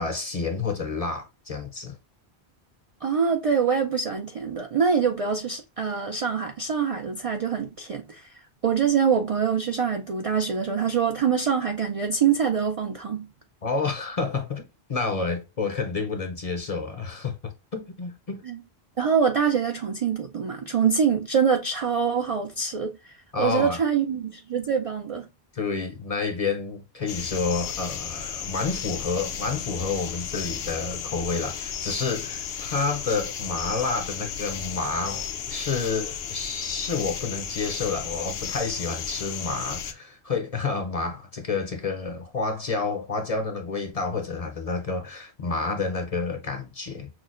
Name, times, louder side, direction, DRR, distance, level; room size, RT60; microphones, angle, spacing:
voice 1, 0.0-2.0 13.6-18.4 23.3-23.8 25.5-47.1, left 4 dB, 40° left, 0.6 m, -29 dB
voice 2, 3.0-13.3 18.4-18.6 19.0-25.3, right 6 dB, 55° right, 0.4 m, -25 dB
sound 1, 27.1-39.9, left 8 dB, 75° left, 0.8 m, -34 dB
6.0 x 2.0 x 2.4 m
omnidirectional pair, 1.1 m